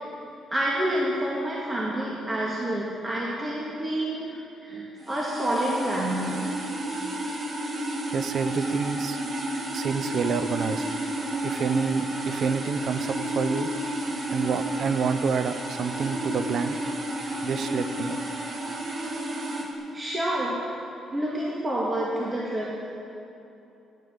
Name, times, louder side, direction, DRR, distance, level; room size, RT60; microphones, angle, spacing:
voice 1, 0.5-6.4 19.6-19.7 19.9-20.8 21.1-22.7, right 1 dB, 20° right, -5 dB, 1.9 m, -28 dB
sound 1, 5.0-19.7, right 1 dB, 45° right, 1.8 m, -31 dB
voice 2, 8.1-9.2 9.7-10.9 11.4-13.7 14.3-16.8 17.4-18.2, right 5 dB, 60° right, 11 dB, 0.6 m, -28 dB
9.9 x 9.4 x 8.0 m, 2.8 s
cardioid pair, 90°, 0 cm